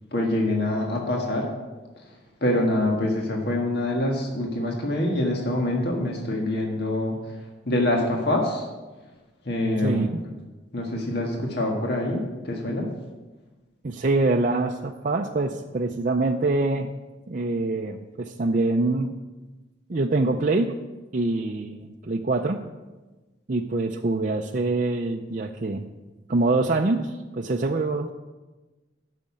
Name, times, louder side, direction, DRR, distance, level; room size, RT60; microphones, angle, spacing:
voice 1, 0.1-1.5 2.0-2.1 2.4-7.4 7.6-8.6 9.4-10.1 10.7-12.9, left 1 dB, 55° left, 0 dB, 1.6 m, -25 dB
voice 2, 9.8-10.2 13.8-16.9 17.3-19.1 19.9-20.7 21.1-22.6 23.5-25.9 26.3-28.1, right 2 dB, 40° right, 2 dB, 0.5 m, -25 dB
10.0 x 6.7 x 8.5 m, 1.2 s
head